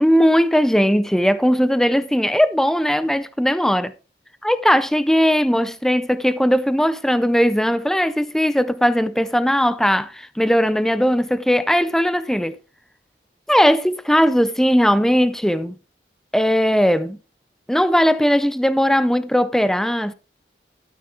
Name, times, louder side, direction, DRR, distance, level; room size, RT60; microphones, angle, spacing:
voice 1, 0.0-3.9 4.4-12.6 13.5-15.7 16.3-17.2 17.7-20.1, equal, 5° left, 0.4 m, -18 dB
12.5 x 8.4 x 3.5 m
head